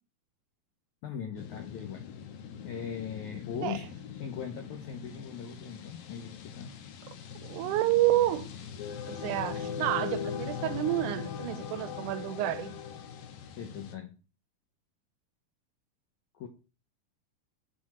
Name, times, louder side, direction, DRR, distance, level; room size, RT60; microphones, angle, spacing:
voice 1, 1.0-2.1 2.6-3.9 4.2-6.7 13.6-14.1 16.4-16.5, left 7 dB, 70° left, 2.0 m, -39 dB
sound 1, 1.4-13.9, left 7 dB, 85° left, 2.9 m, -40 dB
voice 2, 7.4-8.5 9.1-12.8, right 14 dB, 75° right, 2.0 m, -29 dB
12.5 x 4.4 x 4.3 m
omnidirectional pair, 4.0 m